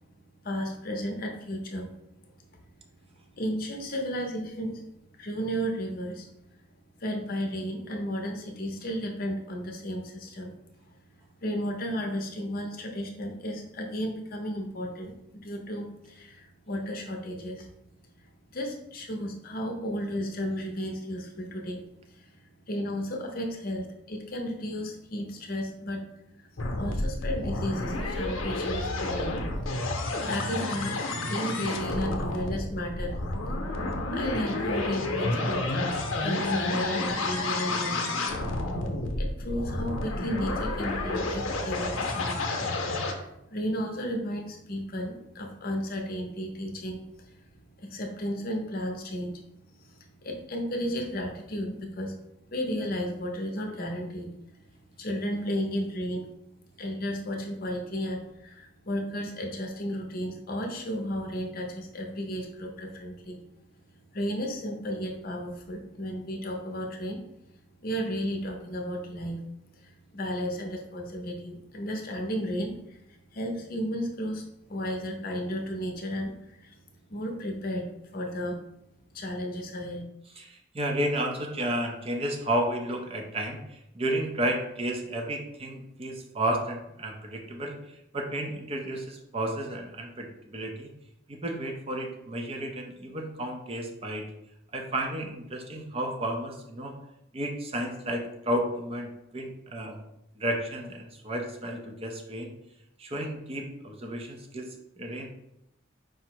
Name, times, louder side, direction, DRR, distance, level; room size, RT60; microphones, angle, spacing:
voice 1, 0.4-1.9 3.3-4.8 5.2-6.3 7.0-10.6 10.9-11.0 11.4-17.7 18.5-21.8 22.1-26.0 26.4-26.5 26.8-29.4 30.2-33.2 33.7-33.9 34.1-38.1 38.6-38.7 39.2-42.5 43.0-47.4 47.8-49.4 49.7-52.2 52.5-54.4 55.0-56.3 56.8-63.4 64.1-67.2 67.8-69.4 69.7-76.8 77.1-77.8 78.1-78.6 79.1-80.0, equal, 45° left, 1 dB, 0.7 m, -33 dB
sound 1, 26.6-43.1, left 2 dB, 85° left, 0.7 m, -30 dB
voice 2, 80.4-90.9 91.3-94.3 94.7-97.0 97.3-100.0 100.4-102.5 103.0-104.7 105.0-105.3, right 1 dB, 30° right, 3 dB, 0.5 m, -32 dB
4.9 x 2.0 x 4.5 m, 0.83 s
head